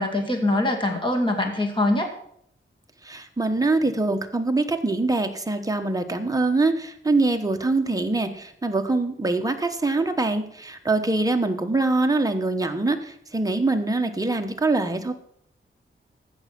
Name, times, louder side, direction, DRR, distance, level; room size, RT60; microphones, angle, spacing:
voice 1, 0.0-2.1, left 1 dB, 25° left, 2 dB, 2.3 m, -23 dB
voice 2, 3.0-15.1, right 2 dB, 15° right, 5 dB, 1.0 m, -24 dB
15.0 x 6.2 x 6.0 m, 0.69 s
wide cardioid pair, 145°, 21 cm